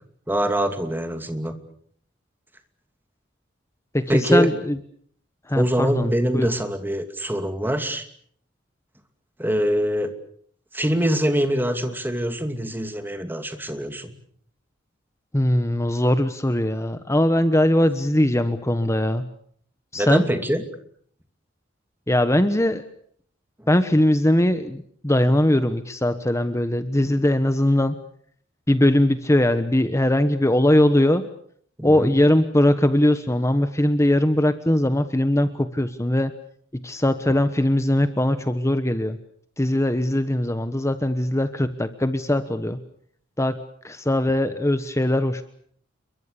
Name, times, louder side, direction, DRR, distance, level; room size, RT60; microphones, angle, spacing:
voice 1, 0.3-1.6 4.1-4.5 5.5-8.1 9.4-10.1 10.7-14.1 19.9-20.6 23.6-23.7 31.8-32.2, equal, 10° right, 7 dB, 2.6 m, -24 dB
voice 2, 3.9-4.8 5.5-6.5 15.3-19.2 19.9-20.2 22.1-22.8 23.7-28.0 28.7-31.2 31.8-36.3 36.7-39.2 39.6-42.8 43.4-43.6 43.8-45.4, left 1 dB, 15° left, 10 dB, 1.2 m, -20 dB
29.5 x 23.0 x 6.9 m, 0.62 s
head